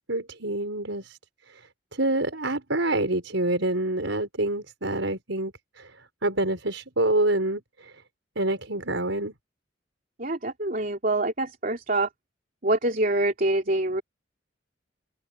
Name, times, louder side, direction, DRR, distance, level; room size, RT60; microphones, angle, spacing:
voice 1, 0.1-1.2 2.0-5.5 5.8-5.9 6.2-7.6 8.4-9.3, right 2 dB, 80° right, 5.5 m, -26 dB
voice 2, 10.2-12.1 12.6-14.0, right 2 dB, 50° right, 3.1 m, -25 dB
open air
head